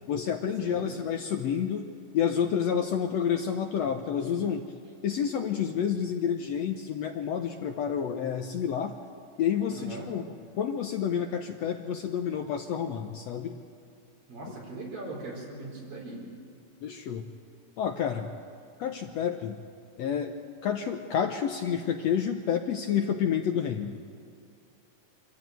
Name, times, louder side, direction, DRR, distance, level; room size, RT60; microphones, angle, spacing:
voice 1, 0.1-4.7 5.0-9.0 9.4-10.2 10.6-13.6 16.8-17.2 17.8-18.3 18.8-19.6 20.0-20.3 20.6-24.0, left 8 dB, 70° left, 5 dB, 1.6 m, -29 dB
voice 2, 0.6-0.9 9.7-10.1 14.3-16.2, right 2 dB, 85° right, -2 dB, 6.1 m, -40 dB
26.0 x 14.0 x 9.3 m, 2.3 s
omnidirectional pair, 3.9 m